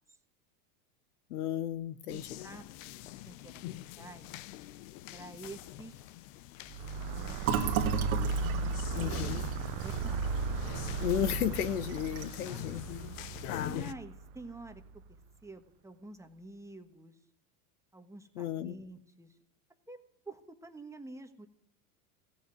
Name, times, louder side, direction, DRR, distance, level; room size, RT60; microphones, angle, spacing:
voice 1, 1.3-2.4 8.9-9.5 11.0-12.8 13.4-13.8 18.4-18.7, left 10 dB, 85° left, 1.1 m, -34 dB
sound 1, 2.1-13.9, left 14 dB, 60° left, 0.8 m, -45 dB
voice 2, 2.1-4.3 5.1-6.0 7.1-8.0 8.6-9.3 9.6-10.4 12.5-12.7 13.6-17.2 17.9-19.4 19.9-20.0 20.2-21.5, right 2 dB, 5° right, 1.3 m, -49 dB
sound 2, 6.7-15.0, right 4 dB, 50° right, 0.9 m, -36 dB
Fill (with liquid), 7.4-11.1 11.4-11.6 11.9-12.5, right 8 dB, 70° right, 1.9 m, -35 dB
16.5 x 7.4 x 9.4 m
hypercardioid pair, 110°, 44 cm